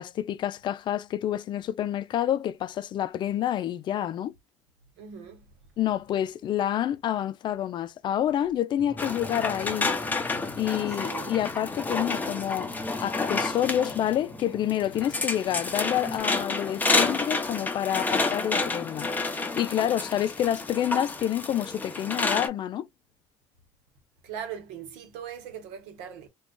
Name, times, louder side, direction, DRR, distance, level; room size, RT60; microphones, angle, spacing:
voice 1, 0.0-4.3 5.8-10.0 10.6-12.7 13.0-22.9, left 11 dB, 50° left, 0.4 m, -28 dB
voice 2, 5.0-5.4 10.9-11.4 24.2-26.3, right 8 dB, 85° right, 0.9 m, -40 dB
sound 1, 8.8-16.2, left 1 dB, 15° right, 1.2 m, -44 dB
sound 2, 9.0-22.5, left 3 dB, 15° left, 0.7 m, -30 dB
2.4 x 2.3 x 3.6 m
supercardioid pair, 90°, 10 cm